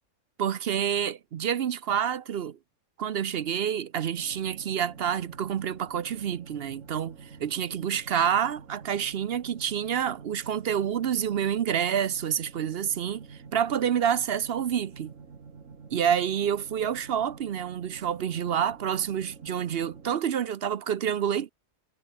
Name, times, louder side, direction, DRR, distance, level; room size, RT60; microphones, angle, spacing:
voice 1, 0.4-2.6 3.0-15.1 15.9-21.5, right 8 dB, 60° right, 0.8 m, -28 dB
sound 1, 4.2-20.2, right 5 dB, 85° right, 2.2 m, -48 dB
omnidirectional pair, 1.3 m